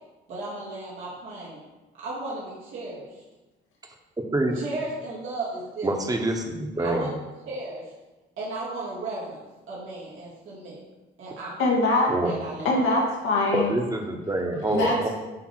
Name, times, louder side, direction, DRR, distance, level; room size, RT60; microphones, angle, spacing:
voice 1, 0.3-1.6 2.0-3.2 4.5-5.9 6.8-7.1 7.5-7.9 8.4-9.4 9.7-10.8 11.2-11.6 12.2-12.8, right 2 dB, 85° right, -8 dB, 2.5 m, -35 dB
voice 2, 4.3-4.6 5.8-7.1 12.1-12.3 13.5-15.1, right 1 dB, 20° right, 3 dB, 1.1 m, -26 dB
voice 3, 11.6-12.1 12.6-13.7 14.7-15.0, left 2 dB, 85° left, -2 dB, 1.7 m, -22 dB
8.4 x 3.4 x 4.7 m, 1.1 s
cardioid pair, 90°, 20 cm